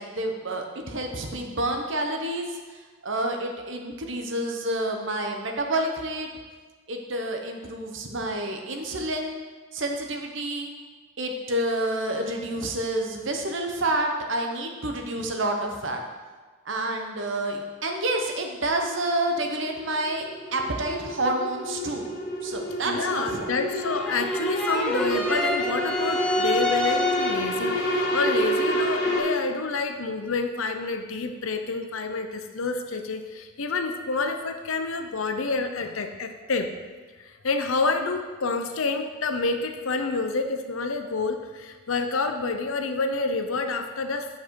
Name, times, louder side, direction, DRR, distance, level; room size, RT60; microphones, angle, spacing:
voice 1, 0.0-6.3 6.9-9.4 9.7-10.7 11.2-16.0 16.7-20.2 20.5-22.1 22.4-23.5, right 1 dB, 60° right, 3 dB, 1.0 m, -29 dB
sound 1, 18.8-29.2, equal, 50° left, 1.6 m, -29 dB
voice 2, 22.9-36.7 37.2-44.3, left 4 dB, 75° left, 7 dB, 0.7 m, -28 dB
sound 2, 23.8-27.7, left 1 dB, 5° left, 0.5 m, -28 dB
8.6 x 5.4 x 4.7 m, 1.4 s
head